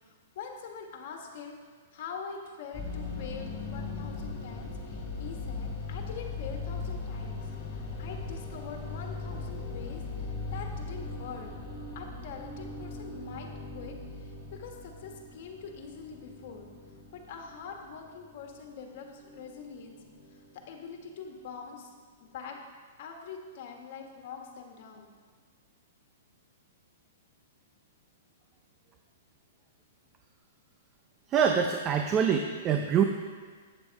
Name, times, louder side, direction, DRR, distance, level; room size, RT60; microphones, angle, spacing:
voice 1, 0.0-7.4 7.7-11.5 11.9-13.5 13.7-20.0 20.3-21.9 22.2-22.6 23.0-25.1, left 6 dB, 55° left, 2 dB, 1.5 m, -44 dB
sound 1, 2.7-21.1, left 3 dB, 30° left, 2.6 m, -39 dB
voice 2, 31.3-33.0, right 7 dB, 25° right, 5 dB, 0.6 m, -25 dB
9.0 x 7.0 x 4.7 m, 1.5 s
hypercardioid pair, 135°, 0 cm